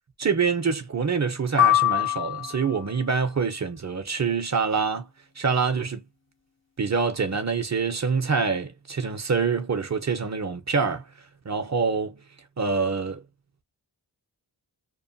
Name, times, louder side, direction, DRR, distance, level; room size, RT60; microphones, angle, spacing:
voice 1, 0.2-5.1 5.4-6.0 6.8-11.0 11.5-12.2 12.6-13.2, right 5 dB, 40° right, 0.6 m, -25 dB
sound 1, 1.6-2.9, left 13 dB, 30° left, 0.4 m, -22 dB
2.9 x 2.1 x 2.5 m
wide cardioid pair, 65°, 42 cm